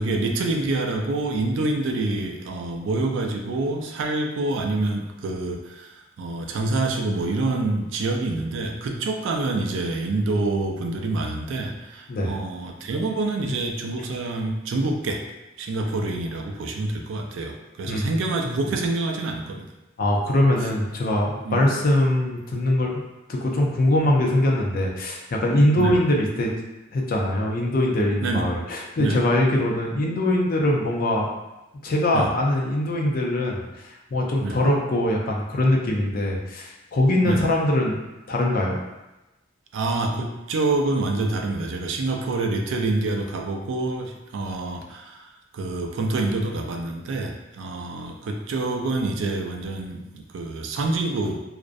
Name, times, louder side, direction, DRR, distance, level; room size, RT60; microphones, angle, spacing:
voice 1, 0.0-15.2 15.6-19.7 21.4-21.6 25.8-25.9 28.2-28.4 29.0-29.2 32.1-32.3 34.4-34.6 37.2-37.4 39.7-51.4, right 2 dB, 70° right, 2 dB, 0.3 m, -27 dB
voice 2, 20.0-23.0 23.3-26.5 26.9-31.3 31.8-38.0 38.3-38.8, left 1 dB, 50° left, -1 dB, 0.4 m, -22 dB
2.4 x 2.0 x 2.5 m, 1.0 s
head